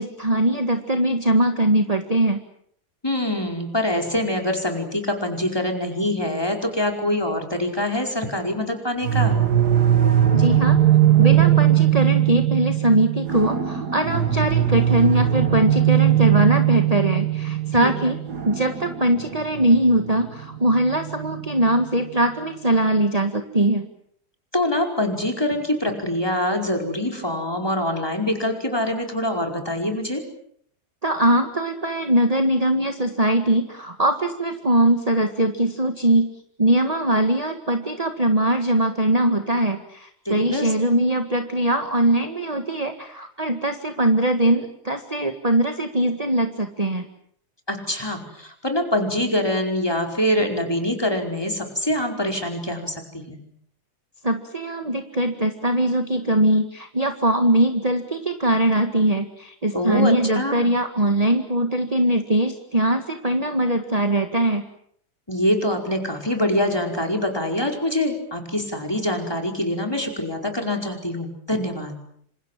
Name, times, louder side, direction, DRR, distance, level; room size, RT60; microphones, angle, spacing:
voice 1, 0.0-2.4 10.3-10.8 11.2-18.2 18.5-23.8 31.0-36.3 36.6-47.1 54.2-64.6, right 1 dB, 25° right, 6 dB, 1.8 m, -21 dB
voice 2, 3.0-9.3 17.8-18.1 24.5-30.2 40.2-40.7 47.7-53.4 59.7-60.7 65.3-72.0, left 1 dB, 15° left, 3 dB, 5.0 m, -24 dB
sound 1, 9.0-21.8, right 11 dB, 80° right, 2.5 m, -20 dB
28.0 x 26.5 x 7.7 m, 0.67 s
omnidirectional pair, 1.7 m